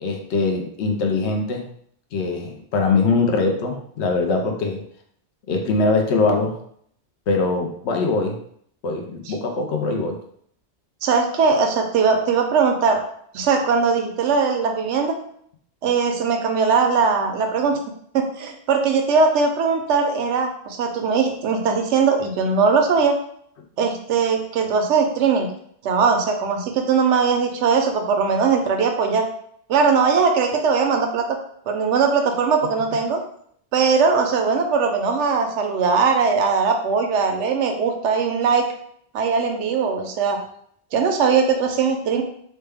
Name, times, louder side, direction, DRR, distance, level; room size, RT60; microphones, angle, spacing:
voice 1, 0.0-1.7 2.1-4.8 5.5-6.6 7.3-8.4 8.8-10.2, left 3 dB, 75° left, 3 dB, 0.9 m, -22 dB
voice 2, 11.0-13.0 13.3-15.2 15.8-17.8 18.1-23.1 23.8-25.5 25.8-29.3 29.7-31.4 31.7-33.2 33.7-38.7 39.1-40.4 40.9-42.2, right 5 dB, 85° right, 4 dB, 0.9 m, -20 dB
3.1 x 2.1 x 3.3 m, 0.65 s
omnidirectional pair, 1.2 m